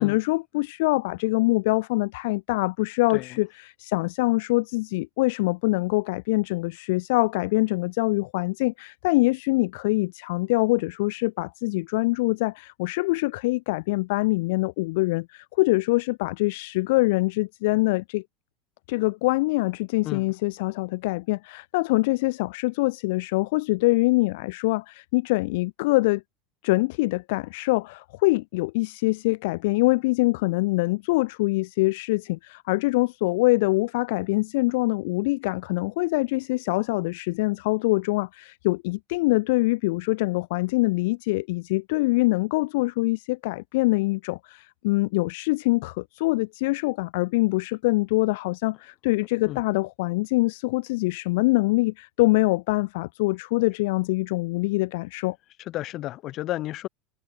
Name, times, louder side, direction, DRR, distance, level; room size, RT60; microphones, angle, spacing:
voice 1, 0.0-18.2 18.9-26.2 26.6-55.4, left 22 dB, 70° left, 0.3 m, -24 dB
voice 2, 55.7-56.9, left 15 dB, 50° left, 2.3 m, -32 dB
hypercardioid pair, 80°, 0 cm